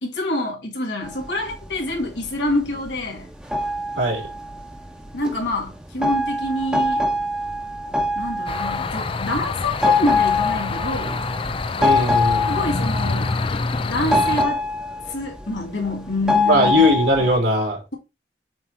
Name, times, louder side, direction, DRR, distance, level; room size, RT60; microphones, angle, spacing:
voice 1, 0.0-3.3 5.1-7.0 8.1-11.2 12.5-13.4 13.9-14.6 15.1-16.9, left 1 dB, 85° left, 2.3 m, -26 dB
sound 1, 1.0-17.4, left 3 dB, 5° right, 1.1 m, -24 dB
voice 2, 4.0-4.3 11.8-12.5 16.5-18.0, equal, 90° right, 3.4 m, -19 dB
sound 2, 8.5-14.4, left 3 dB, 30° left, 0.4 m, -26 dB
7.4 x 3.0 x 4.4 m
head